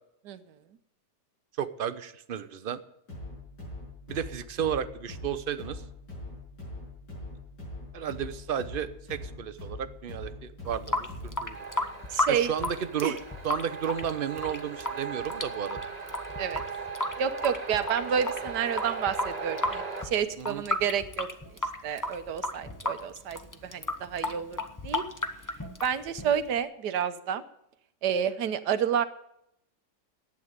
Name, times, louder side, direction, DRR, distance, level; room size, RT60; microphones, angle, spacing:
voice 1, 1.6-2.8 4.1-5.8 7.9-11.6 12.3-13.1 13.4-15.8 20.4-20.6, right 8 dB, 55° right, 13 dB, 0.6 m, -33 dB
sound 1, 3.1-11.6, left 2 dB, 80° left, 6.8 m, -42 dB
Water tap faucet / Sink (filling or washing) / Drip, 10.6-26.6, left 2 dB, 15° left, 0.7 m, -34 dB
sound 2, 11.5-20.0, right 5 dB, 25° right, 1.6 m, -38 dB
voice 2, 12.1-12.5 13.0-13.1 16.4-16.6 17.2-21.3 21.8-24.6 24.8-25.0 25.8-27.4 28.0-29.0, right 8 dB, 75° right, 12 dB, 1.4 m, -29 dB
11.0 x 8.6 x 9.4 m, 0.79 s
omnidirectional pair, 1.8 m